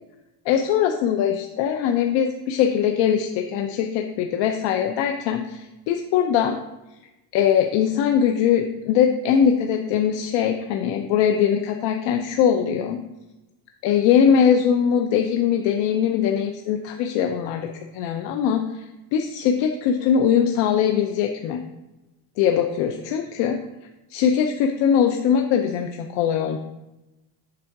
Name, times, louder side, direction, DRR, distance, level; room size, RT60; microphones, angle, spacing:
voice 1, 0.5-6.6 7.3-13.0 13.8-17.7 17.9-18.6 19.1-21.6 22.4-23.6 24.1-26.6, left 8 dB, 65° left, 4 dB, 0.6 m, -21 dB
7.5 x 3.6 x 5.7 m, 0.99 s
cardioid pair, 160°, 46 cm